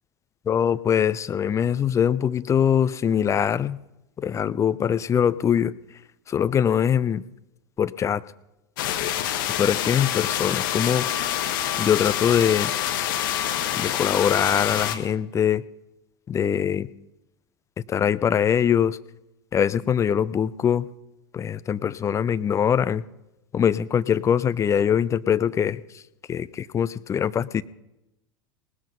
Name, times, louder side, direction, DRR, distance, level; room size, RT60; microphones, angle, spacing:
voice 1, 0.5-3.8 4.2-5.7 6.3-7.2 7.8-8.2 9.6-11.1 11.8-12.7 13.8-15.6 16.3-16.9 17.9-19.0 19.5-20.9 21.3-23.0 23.5-26.0 26.3-27.6, left 8 dB, 25° left, 15 dB, 0.6 m, -22 dB
sound 1, 8.8-15.0, left 11 dB, 60° left, 1.4 m, -26 dB
18.5 x 12.5 x 5.5 m, 0.92 s
figure-of-eight pair, 80°, 13 cm